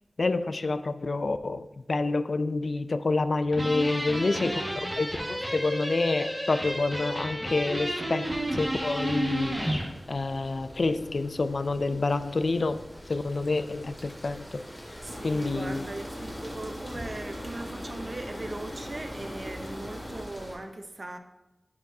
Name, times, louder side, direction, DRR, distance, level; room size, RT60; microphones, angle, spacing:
voice 1, 0.2-4.6 5.0-8.3 8.5-9.8 10.1-14.6 15.2-15.9, left 3 dB, 65° left, 0.3 m, -28 dB
sound 1, 3.5-9.9, right 1 dB, 10° right, 1.5 m, -31 dB
voice 2, 4.1-5.0 15.0-21.2, right 2 dB, 45° right, 0.7 m, -39 dB
sound 2, 8.2-20.6, equal, 10° left, 2.1 m, -45 dB
sound 3, 15.1-20.3, equal, 30° left, 1.1 m, -41 dB
10.0 x 4.6 x 2.7 m
wide cardioid pair, 75°, 0 cm